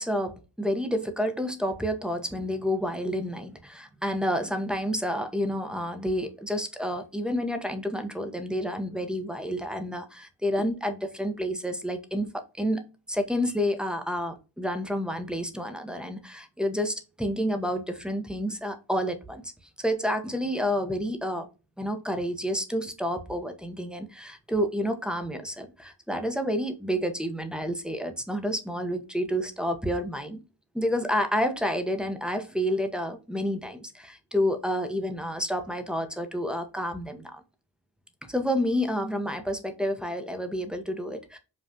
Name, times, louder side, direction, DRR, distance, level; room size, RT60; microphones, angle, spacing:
voice 1, 0.0-12.3 12.6-19.4 19.8-21.5 21.8-30.4 30.7-37.4 38.3-41.4, equal, ahead, 5 dB, 0.7 m, -29 dB
5.3 x 2.3 x 2.7 m, 0.31 s
cardioid pair, 50°, 48 cm